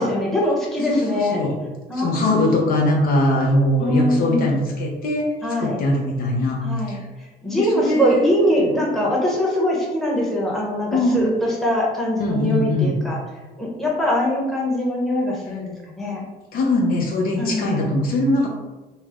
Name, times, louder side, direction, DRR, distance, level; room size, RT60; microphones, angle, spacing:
voice 1, 0.0-1.4 1.9-2.7 3.8-4.6 5.4-5.8 6.6-13.2 13.6-16.2 17.4-18.0, equal, ahead, -4 dB, 0.9 m, -22 dB
voice 2, 0.9-1.5 2.0-5.3 5.6-7.0 7.6-8.2 10.9-11.2 12.2-13.0 16.5-18.5, left 1 dB, 60° left, -1 dB, 0.7 m, -21 dB
3.2 x 2.0 x 3.5 m, 1.2 s
cardioid pair, 110°, 17 cm